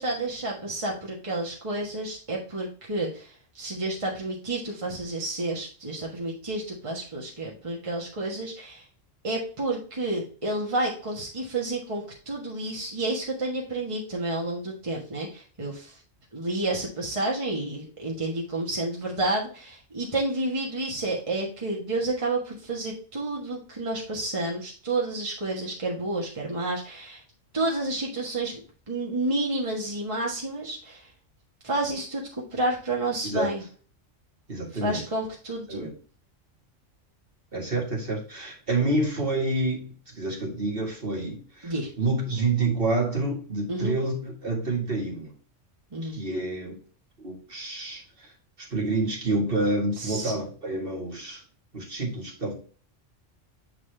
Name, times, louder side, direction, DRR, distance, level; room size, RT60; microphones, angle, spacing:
voice 1, 0.0-8.8 9.2-15.9 16.3-27.2 27.5-31.1 31.6-33.6 34.8-35.9 41.6-41.9 43.7-44.0 45.9-46.2 50.0-50.3, right 2 dB, 25° right, -2 dB, 1.5 m, -30 dB
voice 2, 34.5-35.0 35.7-35.9 37.5-45.3 46.0-46.7 47.2-48.3 48.6-51.4 51.7-52.5, right 2 dB, 45° right, -1 dB, 2.0 m, -28 dB
8.3 x 4.0 x 3.4 m, 0.41 s
omnidirectional pair, 1.3 m